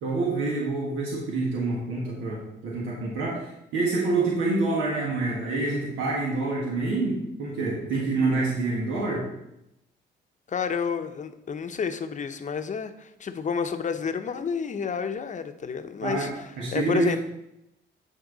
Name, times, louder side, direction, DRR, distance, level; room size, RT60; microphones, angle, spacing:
voice 1, 0.0-3.4 3.7-9.2 16.0-17.2, right 3 dB, 90° right, -4 dB, 1.6 m, -27 dB
voice 2, 10.5-16.5 16.7-17.2, left 6 dB, 40° left, 8 dB, 0.8 m, -30 dB
10.0 x 4.4 x 4.0 m, 0.85 s
cardioid pair, 90°, 20 cm